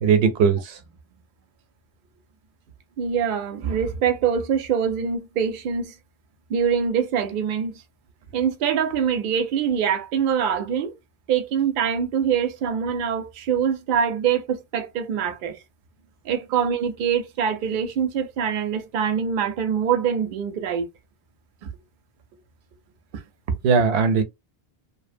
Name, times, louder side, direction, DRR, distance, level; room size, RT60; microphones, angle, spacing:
voice 1, 0.0-0.8 23.6-24.2, right 6 dB, 90° right, 0.9 m, -19 dB
voice 2, 3.0-6.0 6.5-7.8 8.3-10.9 11.3-15.6 16.2-20.9, right 7 dB, 60° right, 0.7 m, -24 dB
2.7 x 2.0 x 2.5 m
omnidirectional pair, 1.1 m